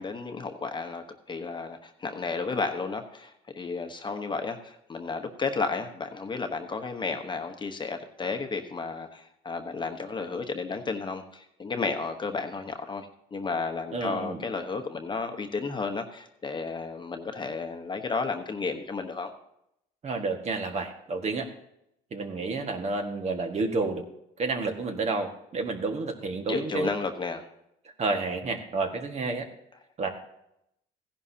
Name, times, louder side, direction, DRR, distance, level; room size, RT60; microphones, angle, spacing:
voice 1, 0.0-19.3 26.5-27.4, left 4 dB, 25° left, 6 dB, 1.1 m, -32 dB
voice 2, 13.9-14.4 20.0-21.5 22.1-24.0 24.4-26.9 28.0-29.4 30.0-30.1, right 3 dB, 40° right, 4 dB, 1.7 m, -30 dB
16.0 x 11.0 x 2.8 m, 0.79 s
cardioid pair, 110°, 17 cm